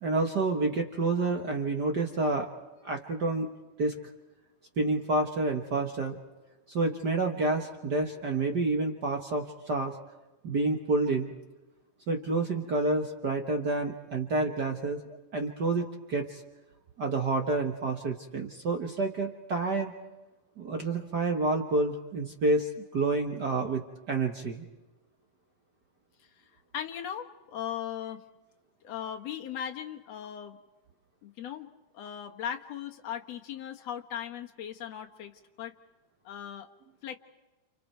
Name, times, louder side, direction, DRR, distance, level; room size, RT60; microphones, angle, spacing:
voice 1, 0.0-2.5 2.8-4.0 4.8-6.2 6.7-9.9 10.4-11.3 12.1-16.4 17.0-19.9 20.6-23.8 24.1-24.6, right 3 dB, 50° right, 3 dB, 1.2 m, -29 dB
voice 2, 26.4-28.2 28.8-30.6 31.2-35.7 36.2-36.7 37.0-37.2, left 9 dB, 60° left, 4 dB, 2.2 m, -38 dB
30.0 x 29.5 x 4.6 m, 1.2 s
omnidirectional pair, 3.7 m